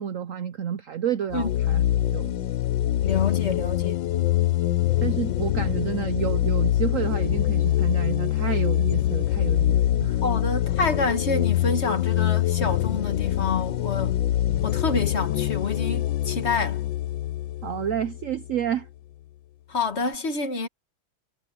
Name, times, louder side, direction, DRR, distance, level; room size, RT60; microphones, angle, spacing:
voice 1, 0.0-1.8 2.1-2.3 5.0-10.2 17.6-18.9, right 9 dB, 80° right, 0.7 m, -29 dB
sound 1, 1.3-18.7, left 13 dB, 70° left, 1.4 m, -24 dB
voice 2, 3.0-4.0 10.2-14.2 14.6-16.8 19.7-20.7, left 4 dB, 35° left, 1.6 m, -27 dB
omnidirectional pair, 2.2 m